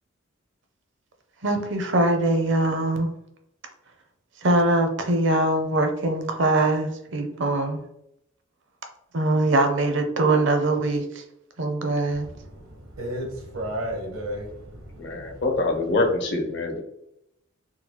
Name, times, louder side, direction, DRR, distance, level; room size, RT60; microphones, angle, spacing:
voice 1, 1.4-3.1 4.4-7.8 9.1-11.2 11.6-12.3, right 2 dB, 60° right, 0.6 m, -22 dB
voice 2, 12.5-15.4, equal, 85° right, 1.0 m, -33 dB
voice 3, 15.0-16.8, left 2 dB, 60° left, 0.7 m, -25 dB
3.8 x 2.3 x 2.9 m
head